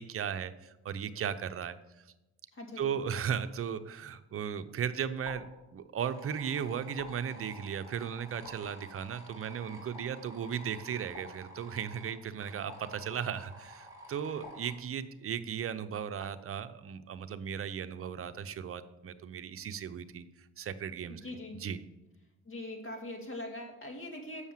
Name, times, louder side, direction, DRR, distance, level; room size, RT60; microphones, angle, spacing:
voice 1, 0.0-2.0 2.8-5.4 5.7-21.3 21.5-21.8, right 8 dB, 45° right, 11 dB, 0.7 m, -36 dB
voice 2, 2.5-2.9 21.2-21.6 22.5-24.5, left 1 dB, 40° left, 2 dB, 2.4 m, -42 dB
sound 1, 4.1-4.6 5.2-6.2 7.0-7.8 8.4-9.3 9.9-10.6 11.1-12.0 12.7-13.6 14.4-15.4 16.2-16.8, left 3 dB, 90° left, 2.4 m, -53 dB
sound 2, 6.0-14.7, equal, 10° right, 2.8 m, -51 dB
7.1 x 6.4 x 7.4 m, 1.0 s
cardioid pair, 90°, 30 cm